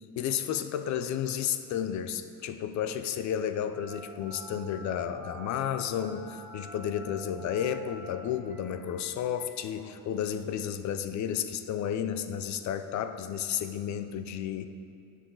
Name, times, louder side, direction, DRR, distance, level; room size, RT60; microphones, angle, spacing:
voice 1, 0.2-14.7, left 9 dB, 50° left, 10 dB, 0.6 m, -32 dB
Telephone, 3.7-10.6, equal, 25° left, 1.9 m, -48 dB
18.5 x 6.6 x 3.9 m, 2.5 s
cardioid pair, 155°, 36 cm